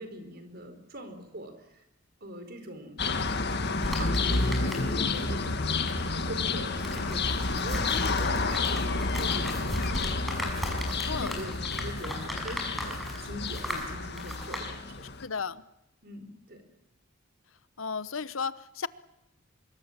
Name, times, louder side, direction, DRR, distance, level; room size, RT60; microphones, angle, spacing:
voice 1, 0.0-1.8 2.2-3.0 3.9-10.7 10.9-15.1 16.0-16.6, equal, 50° right, 8 dB, 4.4 m, -42 dB
sound 1, 3.0-15.3, left 3 dB, 55° left, 1.8 m, -30 dB
sound 2, 3.8-5.2 5.4-14.7, left 1 dB, ahead, 6.1 m, -37 dB
voice 2, 7.9-8.3 11.0-11.3 15.2-15.6 17.8-18.9, left 5 dB, 75° left, 16 dB, 1.0 m, -34 dB
25.0 x 22.5 x 7.4 m, 0.88 s
head